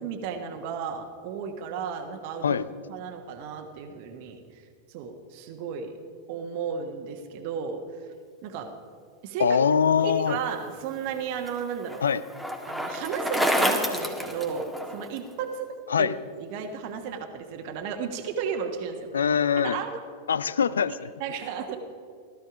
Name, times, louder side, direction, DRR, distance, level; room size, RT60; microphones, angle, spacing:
voice 1, 0.0-2.6 2.9-4.6 4.9-5.9 6.3-8.1 8.4-8.7 9.2-9.6 10.0-12.1 12.7-15.7 16.0-16.1 16.4-19.1 19.5-20.0 21.2-21.8, right 6 dB, 45° right, 5 dB, 1.3 m, -34 dB
voice 2, 9.4-10.4 12.0-12.2 15.9-16.2 19.1-19.8 20.3-21.1, left 7 dB, 70° left, 17 dB, 0.5 m, -23 dB
Bicycle, 10.8-15.2, equal, ahead, 1.6 m, -29 dB
16.5 x 13.0 x 5.0 m, 2.2 s
figure-of-eight pair, 90°, 0 cm